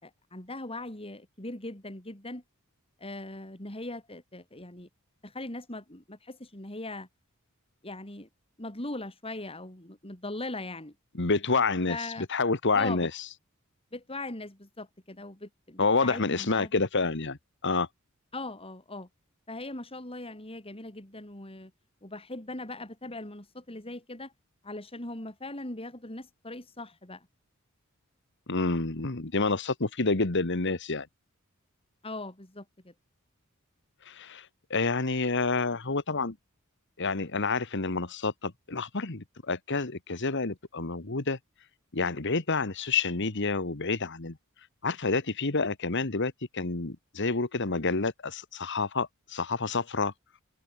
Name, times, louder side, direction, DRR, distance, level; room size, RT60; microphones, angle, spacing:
voice 1, 0.0-2.4 3.0-4.9 5.2-7.1 7.8-8.3 8.6-10.9 11.9-12.3 12.7-13.1 13.9-16.7 18.3-19.1 19.5-21.7 22.0-24.3 24.6-27.3 32.0-32.9, left 2 dB, 25° left, 4.6 m, -40 dB
voice 2, 11.2-12.0 12.3-13.1 15.8-17.4 17.6-17.9 28.5-31.1 34.1-34.5 34.7-36.4 37.0-41.4 41.9-44.4 44.8-50.1, left 3 dB, 60° left, 1.7 m, -28 dB
head